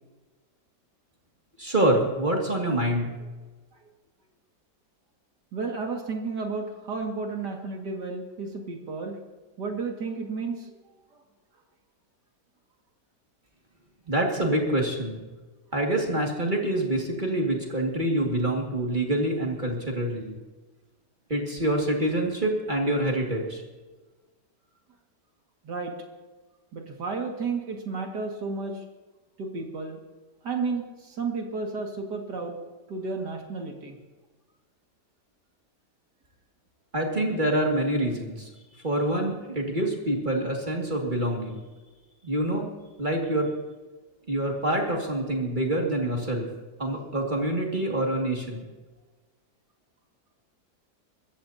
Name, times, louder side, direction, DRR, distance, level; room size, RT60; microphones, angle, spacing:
voice 1, 1.6-3.1 14.1-15.2 15.7-20.4 21.3-23.6 36.9-38.5 38.8-41.6 42.2-42.7 43.0-43.5 44.3-46.5 46.8-48.7, right 1 dB, 25° right, 0 dB, 2.4 m, -26 dB
voice 2, 5.5-9.2 9.6-10.7 25.6-25.9 26.7-28.8 29.4-30.0 30.4-32.6 32.9-34.0, right 4 dB, 70° right, 2 dB, 2.7 m, -32 dB
24.0 x 14.5 x 2.8 m, 1.3 s
omnidirectional pair, 1.9 m